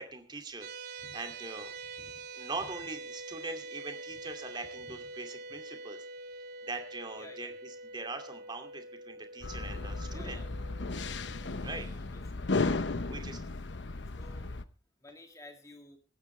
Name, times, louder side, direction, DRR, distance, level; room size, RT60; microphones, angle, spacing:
voice 1, 0.0-1.7 2.0-6.0 6.6-10.4 11.3-11.9 13.0-13.4, right 3 dB, 25° right, 5 dB, 2.4 m, -42 dB
sound 1, 0.6-11.8, right 3 dB, 60° right, 2.8 m, -45 dB
voice 2, 7.2-7.5 10.1-10.5 11.6-12.4 14.2-14.5 15.0-16.0, left 2 dB, 20° left, 3 dB, 2.5 m, -53 dB
sound 2, 9.4-14.6, left 3 dB, 85° left, 0.9 m, -35 dB
24.5 x 9.4 x 3.3 m, 0.37 s
head